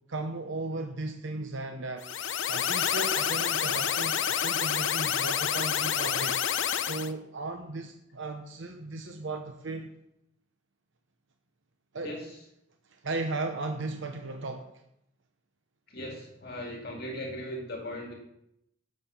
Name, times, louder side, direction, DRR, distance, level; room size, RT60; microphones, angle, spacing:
voice 1, 0.1-2.1 2.5-6.4 6.8-9.9 11.9-12.2 12.9-14.7, right 2 dB, 75° right, 5 dB, 0.9 m, -36 dB
sound 1, 2.0-7.1, left 9 dB, 75° left, 0.7 m, -28 dB
voice 2, 15.9-18.1, equal, 50° left, 0 dB, 2.2 m, -38 dB
11.5 x 6.7 x 6.8 m, 0.81 s
head